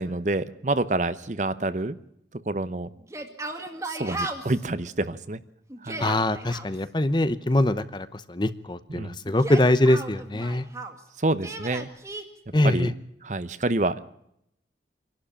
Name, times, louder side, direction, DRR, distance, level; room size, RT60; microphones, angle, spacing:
voice 1, 0.0-2.0 2.5-2.9 3.9-5.4 5.8-6.1 8.9-9.2 11.2-11.9 12.6-12.9 13.2-14.0, right 2 dB, 40° right, 14 dB, 0.8 m, -27 dB
Yell, 3.0-4.6 5.7-6.7 9.3-11.0 11.4-12.2, right 2 dB, 15° right, 2.2 m, -35 dB
voice 2, 6.0-10.7 12.5-12.9, left 1 dB, 25° left, 13 dB, 0.8 m, -23 dB
25.5 x 12.0 x 8.7 m, 0.77 s
head